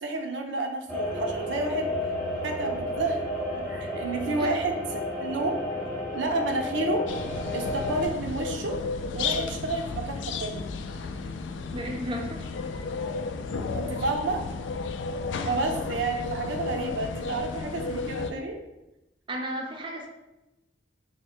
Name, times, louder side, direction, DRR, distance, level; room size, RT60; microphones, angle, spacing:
voice 1, 0.0-1.9 2.4-3.2 3.5-4.7 5.2-5.6 6.1-7.0 7.5-8.7 9.1-10.7 13.7-14.4 15.4-18.6, right 3 dB, 85° right, 3 dB, 0.5 m, -30 dB
sound 1, 0.9-8.1, left 1 dB, 10° left, 0.7 m, -32 dB
sound 2, 7.1-18.3, left 4 dB, 80° left, 0.3 m, -33 dB
voice 2, 11.7-12.5 19.3-20.1, equal, 25° right, 1 dB, 0.4 m, -33 dB
3.5 x 2.1 x 4.3 m, 0.95 s
head